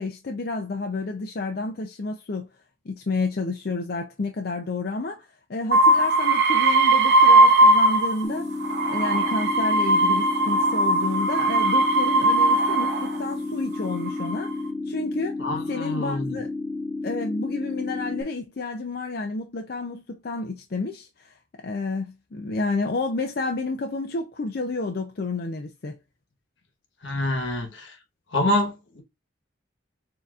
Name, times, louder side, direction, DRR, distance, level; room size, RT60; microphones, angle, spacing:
voice 1, 0.0-2.5 2.9-8.6 8.9-14.5 14.9-15.4 15.7-16.5 17.0-21.3 21.6-26.0, left 3 dB, 50° left, 0.5 m, -30 dB
sound 1, 5.7-8.2 8.6-13.2 13.9-14.5, right 2 dB, 55° right, 0.8 m, -19 dB
sound 2, 8.2-18.2, left 3 dB, 10° left, 1.0 m, -32 dB
voice 2, 15.4-16.4 27.0-27.9 28.3-29.0, left 1 dB, 75° left, 1.2 m, -26 dB
6.5 x 2.8 x 2.4 m
head